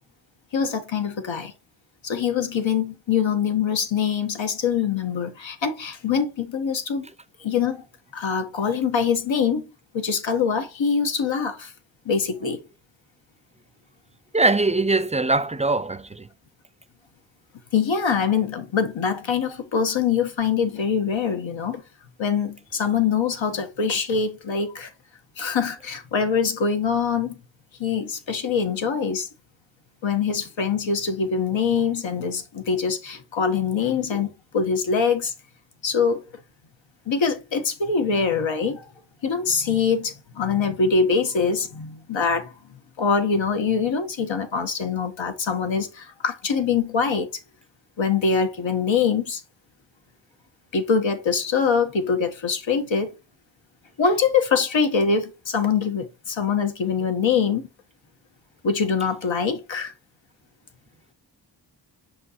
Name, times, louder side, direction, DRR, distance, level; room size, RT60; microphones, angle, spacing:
voice 1, 0.5-1.5 2.0-7.1 7.4-7.8 8.1-9.6 9.9-11.7 12.0-12.6 17.7-21.8 22.2-24.9 25.4-27.4 27.8-29.3 30.0-35.3 35.8-36.2 37.1-38.8 39.2-42.5 43.0-47.3 48.0-49.4 50.7-53.1 54.0-57.6 58.6-59.9, left 6 dB, 90° left, 1.4 m, -24 dB
voice 2, 14.3-16.3, right 3 dB, 15° right, 0.4 m, -21 dB
6.3 x 5.3 x 2.9 m
wide cardioid pair, 95°, 44 cm